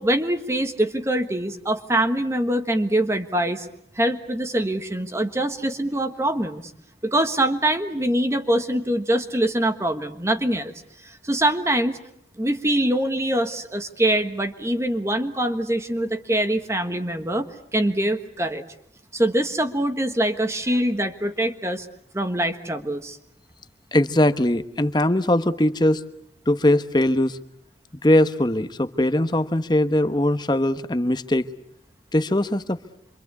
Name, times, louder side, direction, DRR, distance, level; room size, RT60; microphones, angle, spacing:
voice 1, 0.0-3.7 3.9-6.7 7.0-10.7 11.0-12.0 12.4-18.6 19.1-21.9 22.1-23.2, right 1 dB, 15° right, 7 dB, 1.4 m, -24 dB
voice 2, 23.9-26.0 26.5-27.4 28.0-31.5 32.1-32.8, left 1 dB, 25° left, 11 dB, 1.1 m, -20 dB
27.0 x 24.5 x 8.3 m, 0.73 s
head